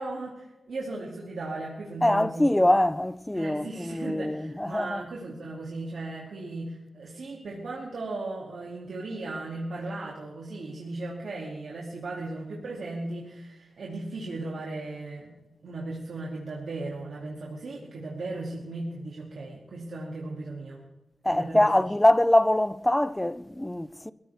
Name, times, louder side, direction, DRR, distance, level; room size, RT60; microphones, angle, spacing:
voice 1, 0.0-2.5 3.3-15.3 15.6-20.8 21.2-21.6, right 2 dB, 75° right, 2.7 m, -36 dB
voice 2, 2.0-5.0 21.2-24.1, left 1 dB, 10° left, 0.5 m, -23 dB
22.5 x 15.5 x 3.6 m
wide cardioid pair, 100°, 0 cm